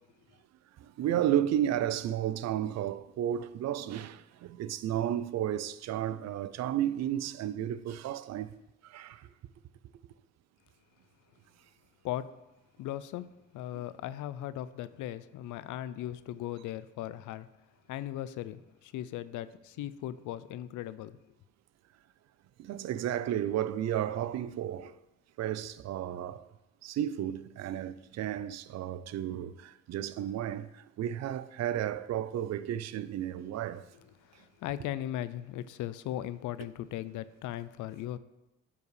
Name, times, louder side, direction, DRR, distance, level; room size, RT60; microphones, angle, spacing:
voice 1, 0.8-8.5 8.8-9.3 22.6-24.9 25.4-26.4 26.8-33.9, right 11 dB, 60° right, 0.4 m, -33 dB
voice 2, 12.0-12.4 12.8-17.5 17.9-21.2 34.2-38.2, left 12 dB, 80° left, 0.5 m, -38 dB
12.0 x 4.7 x 3.3 m
cardioid pair, 90°, 30 cm